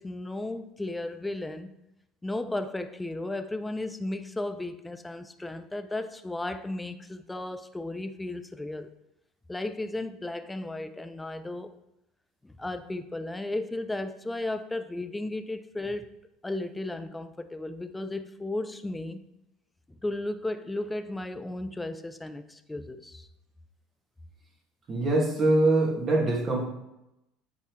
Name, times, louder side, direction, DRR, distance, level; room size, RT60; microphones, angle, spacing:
voice 1, 0.0-1.7 2.2-8.9 9.5-11.8 12.4-16.1 16.4-19.2 19.9-23.3, left 2 dB, 10° left, 0.4 m, -34 dB
voice 2, 24.9-26.6, right 2 dB, 35° right, 2.0 m, -23 dB
8.3 x 3.6 x 3.2 m
supercardioid pair, 95°, 0 cm